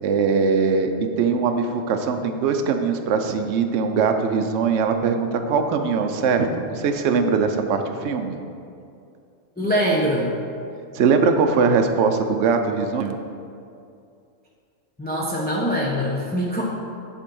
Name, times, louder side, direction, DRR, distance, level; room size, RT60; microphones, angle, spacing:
voice 1, 0.0-8.4 10.9-13.1, right 5 dB, 65° right, 5 dB, 0.9 m, -21 dB
voice 2, 9.6-10.4 15.0-16.6, equal, 10° left, -4 dB, 0.7 m, -23 dB
10.0 x 4.4 x 5.3 m, 2.5 s
omnidirectional pair, 1.4 m